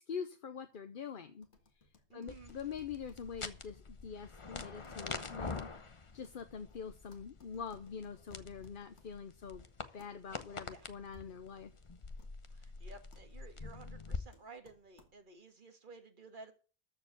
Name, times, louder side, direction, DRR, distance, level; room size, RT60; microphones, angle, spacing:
voice 1, 0.1-1.5 2.1-5.7 6.1-9.7 9.9-11.7, left 6 dB, 55° left, 8 dB, 0.9 m, -44 dB
sound 1, 1.4-15.5, left 3 dB, 85° left, 2.2 m, -69 dB
voice 2, 2.1-2.5 10.7-10.9 12.5-16.5, right 3 dB, 50° right, 6 dB, 1.9 m, -54 dB
sound 2, 2.3-14.2, left 4 dB, 30° left, 0.9 m, -46 dB
13.5 x 4.8 x 8.3 m, 0.37 s
omnidirectional pair, 1.1 m